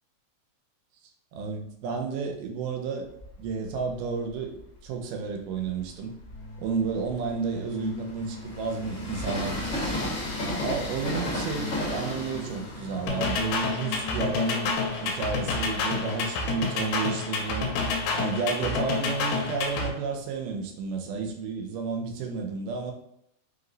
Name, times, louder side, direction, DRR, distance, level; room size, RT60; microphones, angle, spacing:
voice 1, 1.3-3.1 3.4-4.5 4.8-6.1 6.6-10.1 10.6-17.7 18.1-22.9, right 5 dB, 85° right, 3 dB, 2.2 m, -31 dB
Train, 3.1-4.8 5.4-16.0, left 1 dB, 45° left, 1.0 m, -35 dB
sound 1, 6.2-14.8, left 3 dB, 60° left, 1.2 m, -41 dB
sound 2, 13.1-19.9, left 4 dB, 80° left, 2.2 m, -29 dB
5.1 x 2.0 x 3.8 m, 0.76 s
omnidirectional pair, 3.8 m